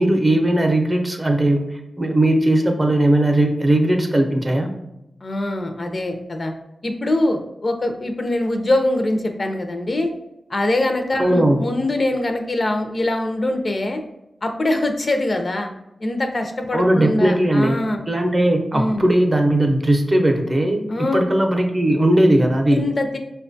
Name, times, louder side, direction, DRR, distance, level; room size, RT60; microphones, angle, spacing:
voice 1, 0.0-1.6 2.0-4.7 11.2-11.6 16.7-17.8 18.1-20.8 21.1-22.8, right 1 dB, 30° right, 4 dB, 0.5 m, -18 dB
voice 2, 5.2-6.5 6.8-10.1 10.5-14.0 14.4-15.7 16.0-18.0 18.7-19.1 20.9-21.2 22.7-23.2, left 1 dB, 50° left, 5 dB, 0.4 m, -23 dB
4.8 x 2.2 x 2.6 m, 0.89 s
cardioid pair, 55°, 0 cm